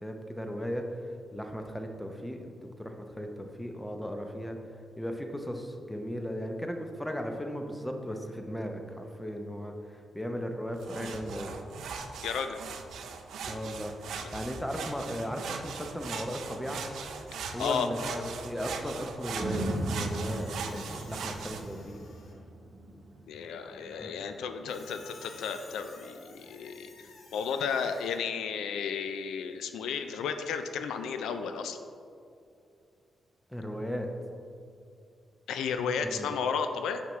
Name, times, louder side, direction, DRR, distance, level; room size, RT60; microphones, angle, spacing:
voice 1, 0.0-4.6 5.0-11.5 13.5-16.8 17.5-22.0 24.0-24.1 33.5-34.1 36.1-36.3, equal, 5° left, 4 dB, 0.7 m, -36 dB
sound 1, 10.8-21.6, right 5 dB, 80° right, 0.4 m, -40 dB
voice 2, 12.2-12.6 14.2-14.3 17.6-17.9 23.3-26.9 27.3-31.8 35.5-37.0, left 6 dB, 90° left, 7 dB, 0.3 m, -33 dB
sound 2, 19.4-27.6 28.0-28.1, right 1 dB, 60° right, 0.9 m, -39 dB
Squeak, 19.7-22.5 24.7-28.2, left 3 dB, 70° left, 0.9 m, -53 dB
5.9 x 5.8 x 3.1 m, 2.5 s
cardioid pair, 70°, 0 cm